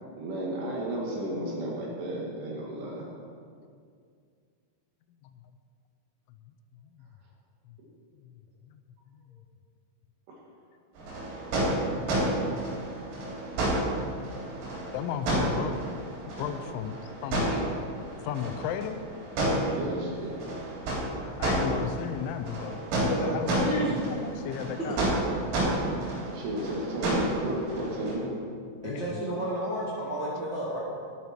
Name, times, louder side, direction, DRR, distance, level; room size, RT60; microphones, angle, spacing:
voice 1, 0.2-3.1 19.7-20.4 26.3-28.3, right 1 dB, 65° right, -3 dB, 4.0 m, -33 dB
sound 1, 11.0-28.1, right 1 dB, 90° right, 5.8 m, -30 dB
voice 2, 14.9-15.8 16.4-17.5 18.2-19.0 21.2-23.7 24.1-25.0 28.8-29.2, left 9 dB, 85° left, 8 dB, 2.9 m, -35 dB
voice 3, 23.1-24.1 24.8-24.9 28.8-30.8, equal, 40° right, -9 dB, 1.7 m, -32 dB
12.5 x 11.5 x 4.5 m, 2.2 s
omnidirectional pair, 5.5 m